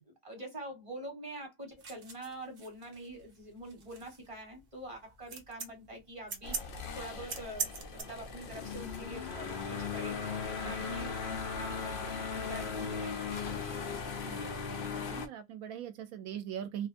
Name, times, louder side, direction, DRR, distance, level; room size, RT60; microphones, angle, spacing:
voice 1, 0.1-10.2 10.6-13.7, right 1 dB, 25° right, 1.0 m, -46 dB
sound 1, 1.8-8.0, right 5 dB, 55° right, 0.6 m, -41 dB
sound 2, 6.4-15.3, left 5 dB, 80° left, 0.4 m, -38 dB
voice 2, 14.2-16.9, right 9 dB, 75° right, 1.0 m, -42 dB
2.5 x 2.4 x 2.5 m
omnidirectional pair, 1.5 m